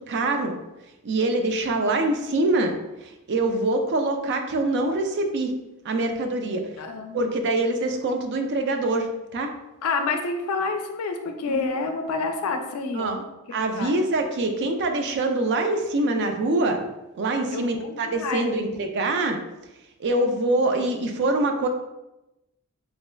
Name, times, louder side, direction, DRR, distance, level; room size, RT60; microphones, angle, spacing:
voice 1, 0.1-0.6 1.0-2.8 3.0-5.5 5.8-6.7 7.1-9.1 9.3-9.5 11.5-11.7 12.9-13.2 13.5-16.8 17.2-19.4 20.0-21.7, right 2 dB, 50° right, 5 dB, 0.4 m, -24 dB
voice 2, 6.8-7.3 9.8-13.2 13.8-14.0 17.5-18.6, left 4 dB, 70° left, 6 dB, 0.4 m, -28 dB
3.5 x 3.2 x 2.2 m, 0.96 s
head